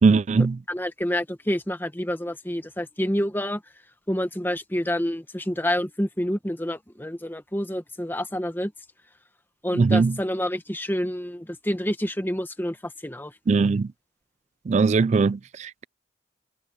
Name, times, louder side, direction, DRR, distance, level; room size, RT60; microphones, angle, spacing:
voice 1, 0.0-0.6 9.7-10.2 13.5-13.9 14.7-15.8, right 4 dB, 35° right, 0.3 m, -20 dB
voice 2, 0.7-3.6 4.1-8.7 9.6-13.3, equal, 10° left, 1.4 m, -28 dB
head